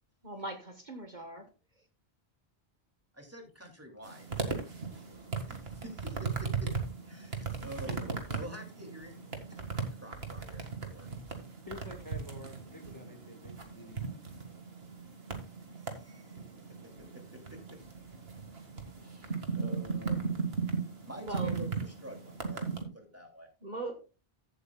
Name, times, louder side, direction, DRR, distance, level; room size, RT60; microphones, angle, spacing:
voice 1, 0.2-1.5 21.2-21.5 23.6-24.1, right 2 dB, 45° right, 5 dB, 1.5 m, -40 dB
voice 2, 3.1-4.5 4.9-6.7 7.1-9.6 10.0-11.5 15.7-16.5 16.8-17.8 19.0-20.2 21.0-23.5, equal, 15° right, 2 dB, 2.6 m, -48 dB
sound 1, 4.0-22.8, right 5 dB, 70° right, 2.1 m, -37 dB
voice 3, 7.9-8.5 9.5-9.6 11.7-14.2, left 1 dB, 20° left, 4 dB, 1.6 m, -48 dB
15.0 x 8.2 x 2.3 m, 0.31 s
omnidirectional pair, 1.1 m